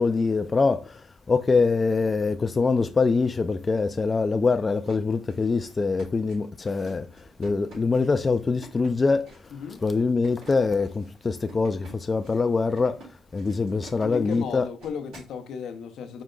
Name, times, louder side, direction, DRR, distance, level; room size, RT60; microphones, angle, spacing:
voice 1, 0.0-9.3 9.8-13.0 13.3-14.7, left 4 dB, 30° left, 0.3 m, -24 dB
sound 1, 4.6-15.4, right 3 dB, 90° right, 2.3 m, -50 dB
voice 2, 9.5-9.8 14.0-16.2, left 7 dB, 75° left, 0.6 m, -35 dB
4.7 x 2.1 x 3.7 m
cardioid pair, 90°, 0 cm